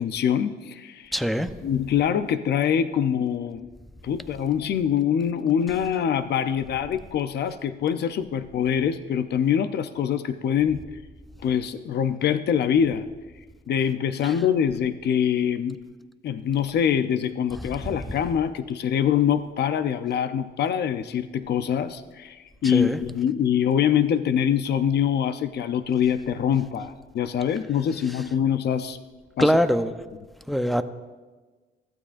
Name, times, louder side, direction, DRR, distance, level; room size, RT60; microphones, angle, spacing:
voice 1, 0.0-1.1 1.6-3.7 4.0-10.8 11.4-13.1 13.7-15.8 16.2-29.0 29.4-29.5, left 8 dB, 70° left, 11 dB, 0.6 m, -24 dB
voice 2, 1.1-1.5 14.2-14.3 17.8-18.2 22.6-23.0 29.4-29.9 30.5-30.8, equal, ahead, 9 dB, 0.8 m, -23 dB
23.0 x 15.0 x 2.6 m, 1.3 s
cardioid pair, 100°, 18 cm